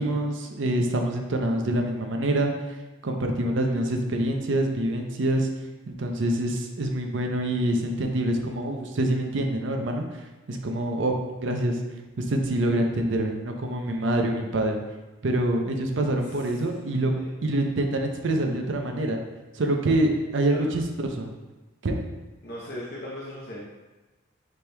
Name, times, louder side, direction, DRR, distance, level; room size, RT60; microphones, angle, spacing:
voice 1, 0.0-2.5 3.0-5.5 5.9-10.0 10.5-11.8 12.2-14.8 15.2-17.1 17.4-19.2 19.5-21.3 21.8-22.0, right 1 dB, 65° right, 3 dB, 0.6 m, -26 dB
voice 2, 16.2-16.7 17.1-17.3 20.5-20.7 22.4-23.6, left 1 dB, 50° left, -6 dB, 0.7 m, -39 dB
5.1 x 4.4 x 2.2 m, 1.2 s
head